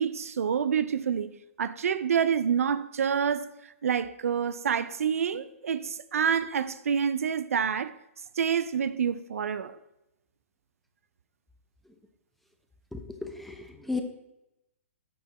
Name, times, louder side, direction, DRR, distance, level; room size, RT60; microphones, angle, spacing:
voice 1, 0.0-1.3 1.6-3.5 3.8-7.9 8.4-9.8, right 7 dB, 80° right, 0.5 m, -27 dB
voice 2, 12.9-14.0, left 3 dB, ahead, 0.9 m, -35 dB
8.4 x 6.6 x 4.2 m
hypercardioid pair, 130°, 8 cm